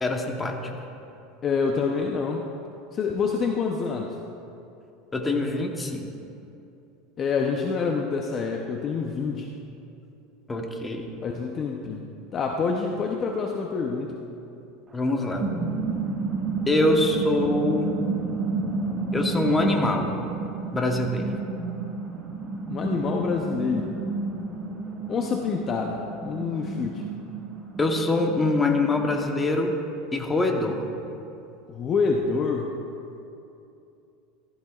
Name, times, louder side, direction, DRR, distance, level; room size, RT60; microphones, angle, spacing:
voice 1, 0.0-0.6 5.1-6.1 10.5-11.1 14.9-15.4 16.7-17.9 19.1-20.2 20.7-21.4 27.8-29.7 30.1-30.9, left 2 dB, 15° left, 2 dB, 1.1 m, -24 dB
voice 2, 1.4-2.4 2.9-4.1 7.2-9.5 11.2-12.0 12.3-14.2 22.7-23.9 25.1-27.0 31.7-32.7, left 5 dB, 30° left, 1 dB, 0.7 m, -27 dB
sound 1, 14.9-29.2, right 4 dB, 25° right, 1.4 m, -31 dB
15.0 x 14.5 x 2.4 m, 2.7 s
supercardioid pair, 140°, 0 cm